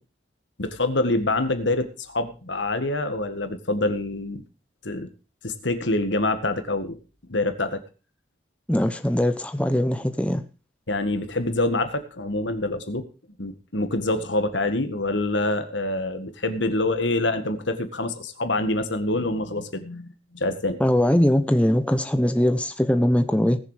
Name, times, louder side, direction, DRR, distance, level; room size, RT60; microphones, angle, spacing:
voice 1, 0.6-4.4 4.8-5.1 5.4-7.0 7.3-7.8 10.9-13.0 13.4-20.8, left 2 dB, 80° left, 1.8 m, -26 dB
voice 2, 8.7-10.4 20.8-23.6, left 1 dB, 5° left, 0.8 m, -21 dB
19.0 x 7.0 x 5.0 m
head